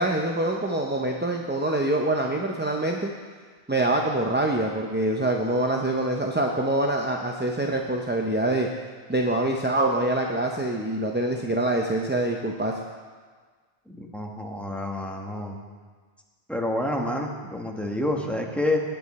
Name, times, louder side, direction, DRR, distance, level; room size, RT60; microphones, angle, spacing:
voice 1, 0.0-3.1 3.7-8.7 9.1-12.7, right 1 dB, 15° right, 1 dB, 0.5 m, -25 dB
voice 2, 13.9-15.6 16.5-18.8, left 1 dB, ahead, 1 dB, 1.1 m, -28 dB
19.0 x 7.0 x 4.2 m, 1.5 s
omnidirectional pair, 1.0 m